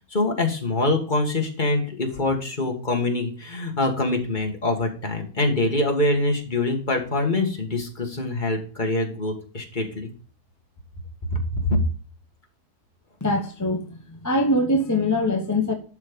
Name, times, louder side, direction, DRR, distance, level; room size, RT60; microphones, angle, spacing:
voice 1, 0.1-10.1 11.5-11.8, left 2 dB, 30° left, 2 dB, 1.9 m, -24 dB
voice 2, 13.2-15.7, left 1 dB, 15° left, 3 dB, 0.9 m, -23 dB
12.0 x 4.4 x 5.3 m, 0.38 s
omnidirectional pair, 1.7 m